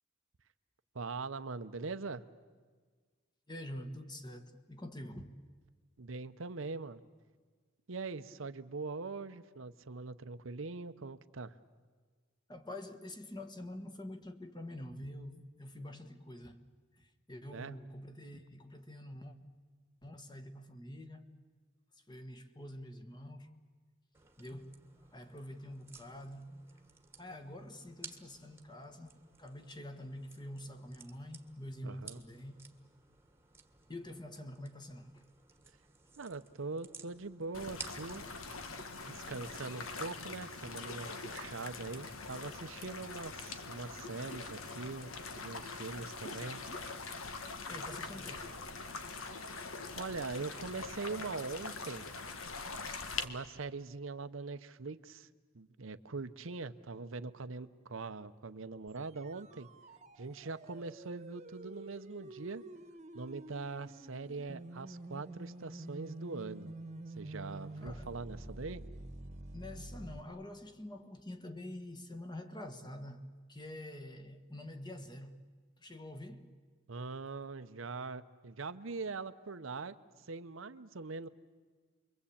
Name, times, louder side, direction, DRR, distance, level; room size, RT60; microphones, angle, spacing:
voice 1, 0.9-2.2 6.0-7.0 7.9-11.6 17.5-17.7 31.8-32.2 36.2-38.2 39.1-46.6 49.9-52.1 53.2-55.3 55.5-59.7 60.2-62.6 63.1-66.7 67.2-68.8 76.9-80.0 80.3-81.3, right 4 dB, 70° right, 0.8 m, -42 dB
voice 2, 3.5-5.3 12.5-16.6 17.0-19.4 20.0-21.4 22.1-23.6 24.4-24.8 25.1-26.6 27.2-32.6 33.9-35.2 47.7-48.5 67.8-68.1 69.5-75.4 75.8-76.5, left 1 dB, 20° left, 1.5 m, -46 dB
sound 1, 24.1-40.3, right 5 dB, 10° right, 1.5 m, -56 dB
sound 2, 37.5-53.3, left 4 dB, 80° left, 1.7 m, -43 dB
sound 3, 58.9-70.2, right 2 dB, 35° right, 1.3 m, -48 dB
29.5 x 23.0 x 8.6 m
head